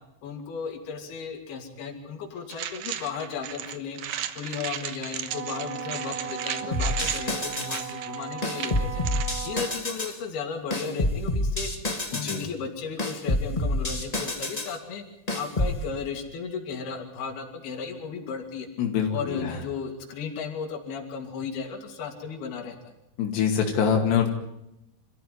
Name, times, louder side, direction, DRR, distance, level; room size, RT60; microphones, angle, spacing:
voice 1, 0.2-4.0 4.4-9.1 9.4-11.7 12.1-15.0 15.3-18.7 19.1-22.9, left 6 dB, 70° left, 2 dB, 4.7 m, -35 dB
sound 1, 2.5-9.4, right 10 dB, 65° right, 2.2 m, -35 dB
Wind instrument woodwind instrument, 5.3-9.8, right 6 dB, 85° right, 5.3 m, -37 dB
sound 2, 6.7-7.9 8.4-10.2 10.7-12.5 13.0-14.8 15.3-15.8, left 1 dB, 35° left, 0.6 m, -28 dB
voice 2, 12.1-12.4 18.8-19.6 23.2-24.3, left 7 dB, 85° left, 2 dB, 4.4 m, -24 dB
27.0 x 15.0 x 9.5 m, 0.84 s
omnidirectional pair, 4.7 m